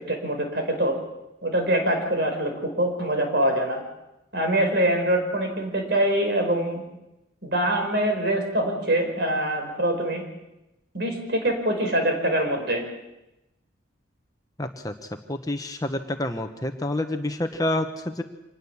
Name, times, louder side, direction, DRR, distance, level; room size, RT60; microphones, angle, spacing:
voice 1, 0.1-1.0 1.4-3.8 4.3-6.8 7.4-10.2 10.9-12.8, right 1 dB, 55° right, 4 dB, 5.3 m, -24 dB
voice 2, 14.6-14.9 15.3-18.2, left 1 dB, 20° left, 6 dB, 1.2 m, -28 dB
26.0 x 19.5 x 7.3 m, 0.94 s
head